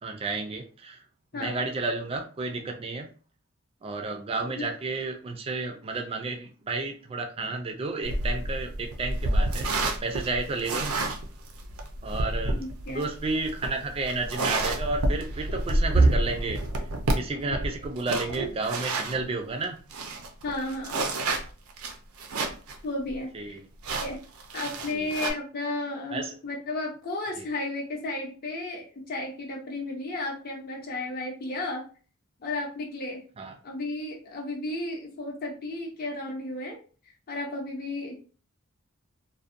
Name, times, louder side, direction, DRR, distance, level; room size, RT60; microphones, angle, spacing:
voice 1, 0.0-1.0 1.3-3.1 3.8-9.7 10.0-11.0 12.0-12.6 12.9-16.6 17.2-19.8 23.3-23.6 24.9-25.1 26.1-26.3 27.4-27.5 33.4-33.5, right 3 dB, 25° right, 4 dB, 0.3 m, -32 dB
sound 1, 8.0-19.2 19.6-19.7 19.9-22.8 23.1-23.2 23.8-25.3, right 2 dB, 80° right, 0.5 m, -28 dB
voice 2, 12.5-13.1 17.5-17.9 20.4-21.0 22.8-23.3 24.0-24.2 24.5-31.8 32.4-33.2 33.6-36.8 37.3-38.1, left 2 dB, 45° left, -1 dB, 0.6 m, -33 dB
2.6 x 2.1 x 2.4 m, 0.37 s
head